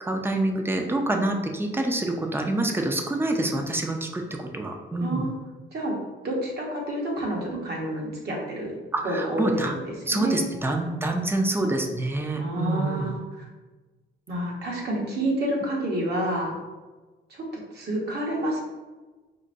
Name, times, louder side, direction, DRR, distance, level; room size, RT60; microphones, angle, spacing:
voice 1, 0.0-5.2 8.9-9.7 10.1-13.1, right 2 dB, 10° right, 3 dB, 0.5 m, -26 dB
voice 2, 5.0-5.3 5.7-6.0 6.2-8.8 9.0-9.5 10.1-10.4 12.4-13.4 14.3-16.6 17.3-18.6, right 1 dB, 55° right, -2 dB, 1.1 m, -29 dB
5.0 x 2.2 x 2.6 m, 1.3 s
cardioid pair, 90°, 20 cm